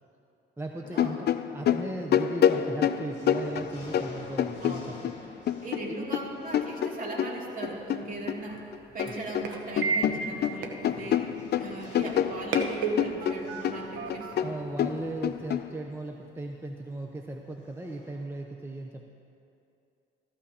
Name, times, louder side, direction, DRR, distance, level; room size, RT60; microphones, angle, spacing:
voice 1, 0.6-5.4 5.9-6.0 14.4-19.1, right 2 dB, 10° right, 2 dB, 0.7 m, -37 dB
sound 1, 0.9-5.2 5.5-8.4 8.7-9.5 9.8-15.6, left 9 dB, 55° left, 0.5 m, -27 dB
sound 2, 1.9-2.4 2.8-18.2, left 1 dB, 35° left, 3.1 m, -52 dB
voice 2, 4.6-5.3 5.6-8.7 8.9-14.7, right 2 dB, 45° right, -3 dB, 2.5 m, -39 dB
sound 3, 7.6-15.5, right 4 dB, 90° right, 1.0 m, -36 dB
15.5 x 14.0 x 2.9 m, 2.6 s
cardioid pair, 90°, 20 cm